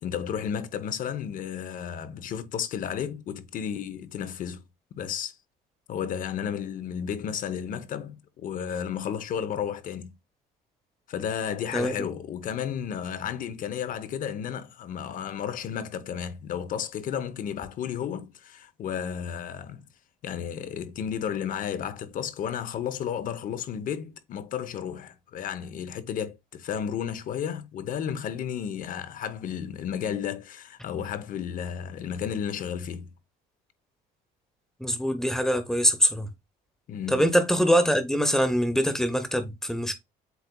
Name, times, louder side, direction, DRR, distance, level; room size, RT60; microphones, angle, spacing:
voice 1, 0.0-4.6 4.9-5.4 5.9-10.1 11.1-19.8 20.2-33.1 36.9-37.3, left 8 dB, 50° left, 0.7 m, -33 dB
voice 2, 11.7-12.1 34.8-36.3 37.1-39.9, equal, 5° left, 0.8 m, -23 dB
8.0 x 2.8 x 2.2 m
cardioid pair, 105°, 18 cm